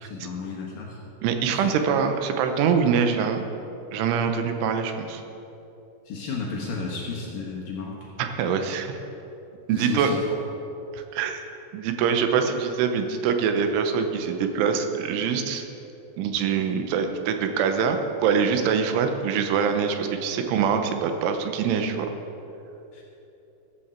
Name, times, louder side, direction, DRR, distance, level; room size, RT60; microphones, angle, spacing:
voice 1, 0.0-1.0 1.5-1.7 6.1-8.0 9.7-10.4 22.9-23.0, left 4 dB, 65° left, -2 dB, 2.4 m, -33 dB
voice 2, 1.2-3.5 3.9-5.2 8.2-9.0 9.7-10.1 10.9-11.4 11.7-15.7 16.2-22.1, right 6 dB, 85° right, 6 dB, 3.3 m, -24 dB
14.0 x 14.0 x 4.4 m, 2.9 s
omnidirectional pair, 5.5 m